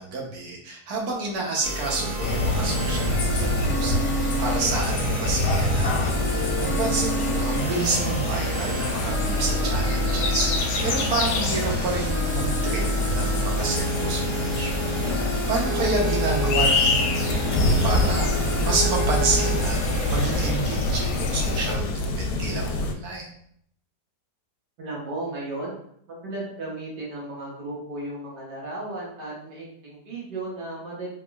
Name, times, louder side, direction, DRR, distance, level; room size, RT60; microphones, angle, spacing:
voice 1, 0.0-3.5 3.8-14.7 15.5-19.8 20.1-23.3, right 3 dB, 70° right, -1 dB, 1.3 m, -29 dB
sound 1, 1.6-20.5, right 1 dB, 45° right, 0.9 m, -28 dB
sound 2, 2.2-21.8, left 3 dB, 90° left, 1.2 m, -27 dB
sound 3, 17.3-22.9, left 1 dB, 70° left, 0.9 m, -26 dB
voice 2, 24.8-25.8 26.1-31.1, right 2 dB, 90° right, -5 dB, 1.8 m, -35 dB
3.6 x 3.6 x 2.3 m, 0.67 s
omnidirectional pair, 1.8 m